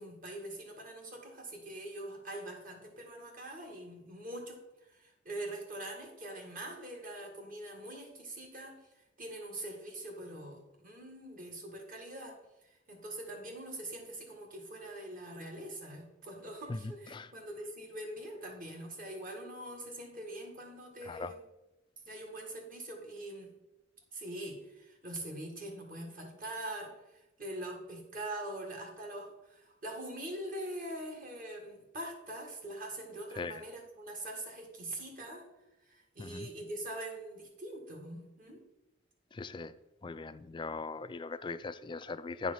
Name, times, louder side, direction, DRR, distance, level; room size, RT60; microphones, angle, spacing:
voice 1, 0.0-4.6 4.9-12.4 12.6-21.4 22.1-23.5 24.1-35.4 35.9-38.6, right 1 dB, 45° right, 1 dB, 1.8 m, -43 dB
voice 2, 21.0-21.3 33.4-33.6 36.2-36.5 39.3-39.7 40.0-42.5, left 3 dB, 25° left, 13 dB, 0.3 m, -39 dB
10.0 x 4.7 x 5.6 m, 0.99 s
head